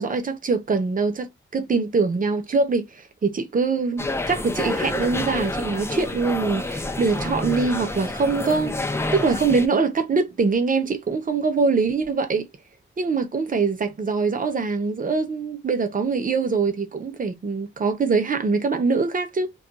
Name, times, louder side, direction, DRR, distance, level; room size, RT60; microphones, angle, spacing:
voice 1, 0.0-12.5 13.0-19.5, right 4 dB, 40° right, 0.6 m, -23 dB
sound 1, 4.0-9.7, left 2 dB, 15° left, 0.3 m, -28 dB
2.3 x 2.2 x 3.9 m
wide cardioid pair, 170°, 21 cm